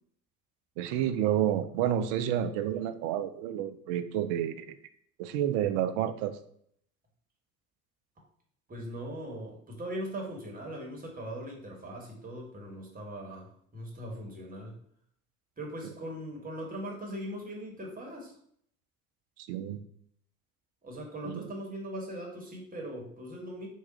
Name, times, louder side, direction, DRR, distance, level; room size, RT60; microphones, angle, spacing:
voice 1, 0.8-4.8 5.2-6.4 19.4-19.8 21.2-21.4, right 10 dB, 55° right, 9 dB, 0.5 m, -30 dB
voice 2, 8.7-14.8 15.6-18.3 20.8-23.7, equal, 20° right, -1 dB, 1.3 m, -40 dB
3.6 x 2.4 x 4.0 m, 0.66 s
figure-of-eight pair, 65°, 44 cm